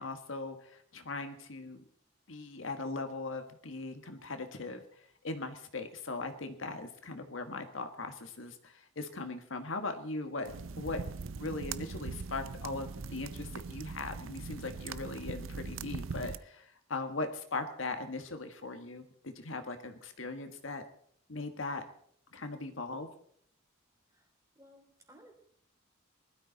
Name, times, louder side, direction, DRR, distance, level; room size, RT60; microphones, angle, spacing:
voice 1, 0.0-1.8 2.3-11.0 11.3-20.8 21.3-21.8 22.3-23.1, left 3 dB, 75° left, 7 dB, 1.5 m, -39 dB
sound 1, 10.4-16.4, right 4 dB, 80° right, 0.6 m, -41 dB
voice 2, 24.5-25.3, equal, 15° right, 2 dB, 3.3 m, -58 dB
19.5 x 12.5 x 4.1 m, 0.63 s
head